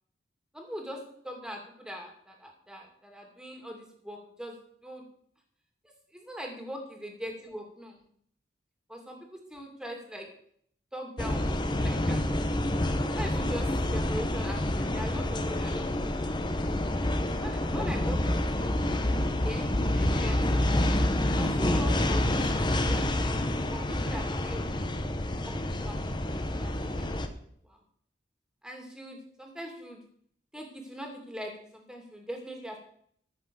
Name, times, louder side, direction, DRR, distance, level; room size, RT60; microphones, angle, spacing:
voice 1, 0.5-4.6 4.8-5.0 6.1-8.0 8.9-10.3 10.9-12.2 13.1-15.9 16.2-16.9 17.4-18.9 19.3-20.7 21.3-24.9 25.5-26.0 26.6-27.3 27.7-27.8 28.6-30.0 30.5-32.8, equal, 5° right, 2 dB, 2.5 m, -41 dB
sound 1, 11.2-27.3, left 1 dB, 25° left, 1.0 m, -28 dB
14.0 x 6.3 x 6.9 m, 0.65 s
head